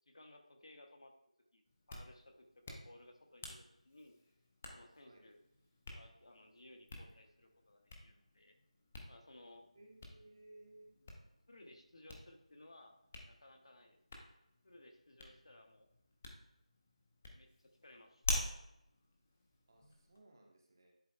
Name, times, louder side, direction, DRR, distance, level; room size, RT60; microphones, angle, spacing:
voice 1, 0.1-1.1 1.5-1.6 1.9-4.2 4.7-5.4 5.9-8.5 9.1-9.7 11.0-11.1 11.5-13.0 13.2-14.0 14.6-15.9 17.3-18.3, left 1 dB, 45° left, 4 dB, 0.8 m, -60 dB
Hands, 1.6-20.2, left 2 dB, 10° left, 0.4 m, -48 dB
voice 2, 9.7-10.9 19.7-20.9, right 2 dB, 30° right, 1 dB, 1.0 m, -60 dB
10.5 x 4.1 x 2.2 m, 0.83 s
figure-of-eight pair, 175°, 4 cm